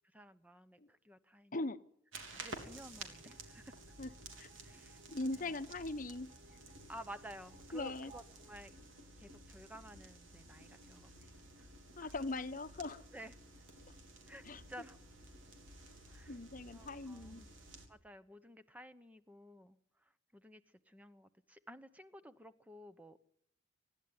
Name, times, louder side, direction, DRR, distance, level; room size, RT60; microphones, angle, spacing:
voice 1, 0.1-1.6 2.3-3.8 4.6-5.0 5.4-5.5 6.9-8.7 9.2-11.7 12.0-12.1 13.1-13.3 14.3-15.0 16.1-16.4 16.7-17.5 17.9-19.8 20.3-23.2, equal, 10° right, 11 dB, 0.9 m, -53 dB
sound 1, 2.1-17.9, right 2 dB, 85° right, 3.5 m, -53 dB
sound 2, 3.0-9.5, right 3 dB, 40° right, 2.1 m, -64 dB
voice 2, 5.1-6.3 7.7-8.1 12.0-13.0 14.4-14.6 16.3-17.4, left 2 dB, 40° left, 11 dB, 0.9 m, -40 dB
25.0 x 11.5 x 9.5 m, 0.71 s
head